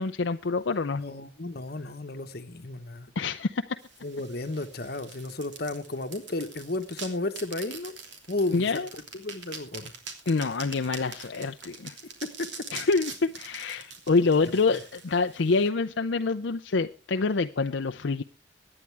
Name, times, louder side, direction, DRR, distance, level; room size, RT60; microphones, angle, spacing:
voice 1, 0.0-1.0 3.2-3.8 8.5-8.9 10.3-11.9 12.7-18.2, left 4 dB, 70° left, 0.6 m, -26 dB
voice 2, 0.9-3.1 4.0-7.9 8.3-8.8 9.1-9.9 12.4-12.5, left 2 dB, 50° left, 1.2 m, -33 dB
sound 1, 3.8-15.7, right 5 dB, 65° right, 3.1 m, -44 dB
23.5 x 9.8 x 3.4 m
head